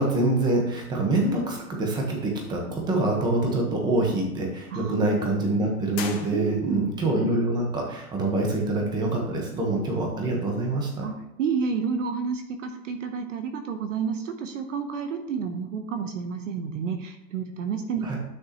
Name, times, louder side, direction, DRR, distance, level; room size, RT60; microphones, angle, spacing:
voice 1, 0.0-11.1 18.0-18.2, right 2 dB, 10° right, 0 dB, 1.1 m, -25 dB
sound 1, 5.9-7.0, left 7 dB, 85° left, 2.2 m, -38 dB
voice 2, 6.3-6.8 11.0-18.1, right 6 dB, 50° right, 7 dB, 1.0 m, -30 dB
11.5 x 6.3 x 3.0 m, 0.88 s
hypercardioid pair, 160°, 49 cm